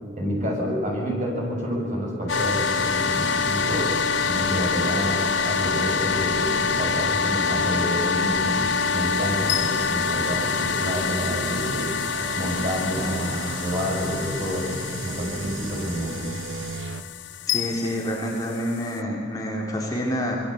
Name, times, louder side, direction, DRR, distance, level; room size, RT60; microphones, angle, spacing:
voice 1, 0.2-3.9 4.3-8.6 8.9-11.9 12.4-16.2, equal, 40° right, -1 dB, 7.4 m, -28 dB
sound 1, 2.3-19.0, left 6 dB, 70° left, 0.6 m, -27 dB
sound 2, 2.3-17.0, right 4 dB, 85° right, 1.0 m, -34 dB
sound 3, 17.5-18.2, left 12 dB, 85° left, 4.1 m, -32 dB
voice 2, 17.5-20.4, equal, 20° left, -2 dB, 4.0 m, -27 dB
25.5 x 21.5 x 8.3 m, 2.4 s
head